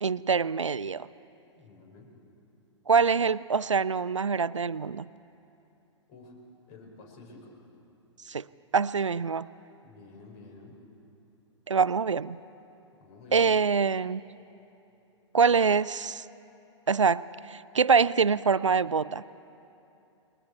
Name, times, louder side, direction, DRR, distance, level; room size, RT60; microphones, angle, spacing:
voice 1, 0.0-1.1 2.9-5.1 8.3-8.5 8.7-9.5 11.7-12.4 13.3-14.2 15.3-16.3 16.9-19.2, right 5 dB, 80° right, 19 dB, 0.4 m, -25 dB
voice 2, 1.5-2.2 6.1-6.4 6.7-7.6 9.8-10.8 12.9-13.5, left 3 dB, 40° left, 0 dB, 5.1 m, -50 dB
29.5 x 22.5 x 4.6 m, 2.8 s
figure-of-eight pair, 105°, 15 cm